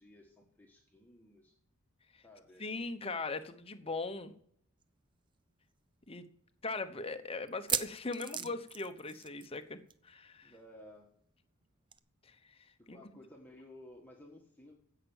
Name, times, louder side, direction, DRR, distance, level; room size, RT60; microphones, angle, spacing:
voice 1, 0.0-1.5 2.2-2.8 8.3-8.6 10.4-11.2 12.8-14.7, left 1 dB, 10° left, 0 dB, 1.5 m, -56 dB
voice 2, 2.6-4.3 6.1-6.3 6.6-9.8 10.0-10.5 12.3-12.6 12.9-13.0, left 3 dB, 25° left, 9 dB, 0.9 m, -40 dB
sound 1, 4.8-4.9 5.2-5.3 5.9-6.0 7.5-9.6 9.9-10.1 10.3-10.4 11.9-12.0, right 8 dB, 20° right, 0.4 m, -37 dB
16.0 x 5.9 x 7.1 m, 0.65 s
head